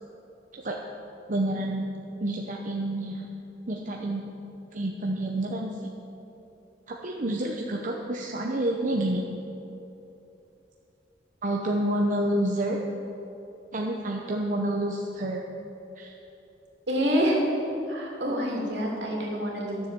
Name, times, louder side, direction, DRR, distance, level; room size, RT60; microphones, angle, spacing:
voice 1, 1.3-1.9 2.2-3.3 3.7-4.3 4.7-5.9 6.9-9.2 11.4-12.8 13.7-15.4 16.0-16.1, right 1 dB, 45° right, 0 dB, 0.8 m, -28 dB
voice 2, 16.9-17.4 17.9-19.9, equal, 75° right, -2 dB, 2.9 m, -27 dB
12.5 x 7.4 x 7.5 m, 2.9 s
head